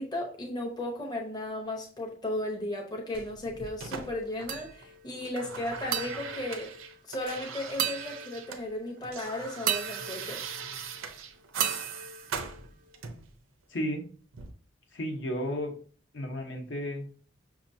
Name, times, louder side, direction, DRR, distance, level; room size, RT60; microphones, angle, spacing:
voice 1, 0.0-6.7 7.1-10.4, left 1 dB, 20° left, 0 dB, 0.7 m, -35 dB
sound 1, 3.1-4.8 5.1-8.6 8.9-13.3 14.3-14.5, right 6 dB, 90° right, 0.6 m, -40 dB
sound 2, 4.5-5.1 5.9-7.3 7.8-8.8 9.7-11.1 11.6-13.0, right 9 dB, 40° right, 0.4 m, -35 dB
voice 2, 13.7-14.0 14.9-15.7 16.1-17.1, equal, 65° left, 3 dB, 0.9 m, -33 dB
5.9 x 2.9 x 2.6 m, 0.42 s
head